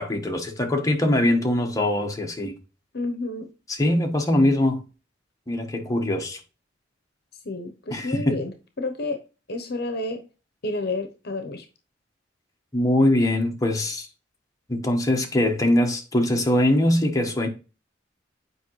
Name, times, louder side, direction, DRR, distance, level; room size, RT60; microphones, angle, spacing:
voice 1, 0.0-2.5 3.7-4.8 5.5-6.4 7.9-8.4 12.7-14.1 14.7-17.5, left 1 dB, 20° left, 1.3 m, -22 dB
voice 2, 2.9-3.5 7.5-9.2 9.5-10.2 10.6-11.6, left 2 dB, 60° left, 0.9 m, -30 dB
8.3 x 5.1 x 3.2 m
head